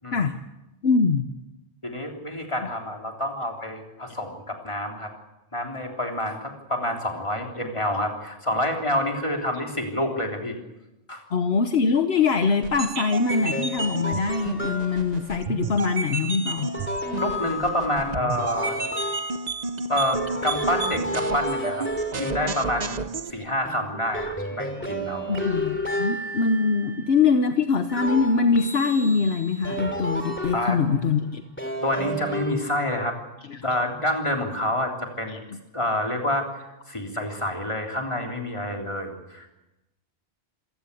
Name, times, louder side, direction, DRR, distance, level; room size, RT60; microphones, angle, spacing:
voice 1, 0.8-1.3 11.3-16.7 18.8-19.0 23.3-23.4 25.3-31.4 33.5-33.6 35.3-35.4, left 4 dB, 65° left, 8 dB, 1.2 m, -23 dB
voice 2, 1.8-5.1 5.5-10.6 11.1-11.2 17.2-18.8 19.9-21.9 22.2-23.0 23.3-25.4 30.5-30.8 31.8-33.2 33.6-34.9 35.2-35.4 35.7-36.5 36.9-39.5, left 1 dB, 25° left, 2 dB, 3.5 m, -28 dB
sound 1, 12.6-23.3, right 4 dB, 40° right, 0.9 m, -32 dB
sound 2, 13.3-15.2 16.6-19.7 20.1-23.2 23.6-27.2 27.9-31.0 31.6-33.0, equal, 10° left, 2.9 m, -32 dB
27.0 x 15.5 x 8.4 m, 1.0 s
omnidirectional pair, 1.1 m